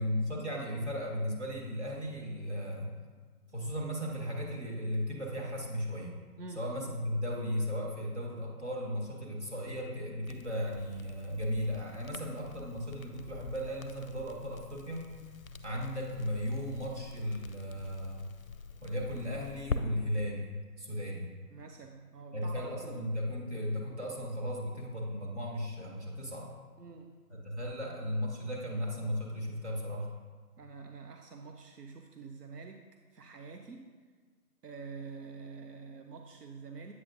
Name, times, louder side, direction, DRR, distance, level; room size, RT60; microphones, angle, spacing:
voice 1, 0.0-2.9 3.5-6.1 6.5-15.1 15.6-18.3 18.8-21.3 22.3-26.5 27.3-30.1, equal, 45° right, -3 dB, 1.7 m, -36 dB
voice 2, 6.4-6.7 21.5-23.0 26.8-27.2 30.6-32.8 33.1-33.9 34.6-36.9, right 4 dB, 80° right, 4 dB, 0.8 m, -47 dB
Crackle, 10.2-19.8, left 5 dB, 60° left, 0.5 m, -44 dB
8.4 x 6.6 x 2.6 m, 1.5 s
figure-of-eight pair, 175°, 47 cm